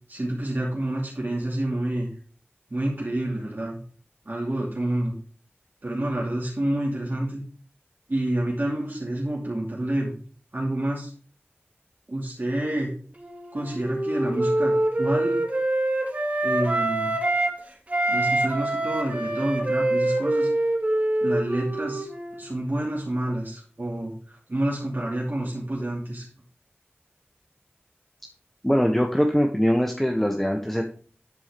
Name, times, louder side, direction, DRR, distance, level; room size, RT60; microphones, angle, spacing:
voice 1, 0.1-2.1 2.7-3.8 4.2-5.1 5.8-7.4 8.1-10.1 10.5-11.1 12.1-12.9 13.5-15.4 16.4-17.1 18.1-20.5 21.2-22.1 22.3-26.3, right 1 dB, 55° right, -4 dB, 2.8 m, -28 dB
Wind instrument woodwind instrument, 13.2-17.6 17.9-22.4, right 1 dB, 35° right, 2.4 m, -25 dB
voice 2, 28.6-30.8, equal, 5° left, 2 dB, 1.3 m, -22 dB
12.0 x 4.7 x 5.2 m, 0.42 s
wide cardioid pair, 55°, 4 cm